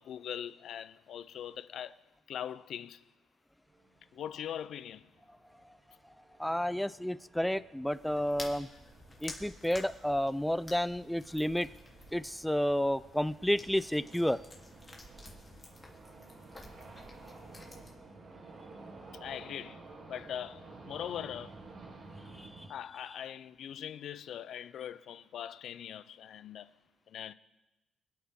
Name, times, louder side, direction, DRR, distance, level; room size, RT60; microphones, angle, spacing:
voice 1, 0.0-2.0 2.3-3.0 4.1-5.1 19.1-19.8 20.1-21.6 22.7-26.7 27.1-27.3, left 9 dB, 70° left, 0.5 m, -41 dB
sound 1, 3.7-22.7, right 3 dB, 55° right, 2.9 m, -53 dB
voice 2, 6.4-8.7 9.2-11.7 12.1-14.4 22.4-22.7, equal, 5° left, 0.4 m, -31 dB
sound 2, 7.9-17.9, left 2 dB, 25° left, 2.6 m, -51 dB
24.5 x 9.0 x 3.7 m
cardioid pair, 90°, 0 cm